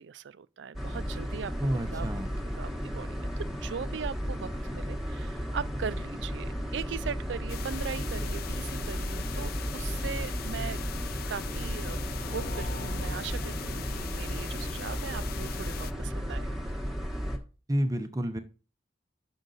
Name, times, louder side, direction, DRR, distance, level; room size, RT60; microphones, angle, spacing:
voice 1, 0.0-2.1 2.6-10.8 11.3-16.7, right 6 dB, 75° right, 0.4 m, -39 dB
sound 1, 0.7-17.4, equal, ahead, 1.1 m, -34 dB
voice 2, 1.6-2.3 17.7-18.4, equal, 20° right, 0.6 m, -29 dB
sound 2, 7.5-15.9, left 9 dB, 50° left, 0.3 m, -41 dB
sound 3, 12.1-14.9, left 1 dB, 35° left, 0.8 m, -41 dB
6.5 x 6.2 x 3.9 m
head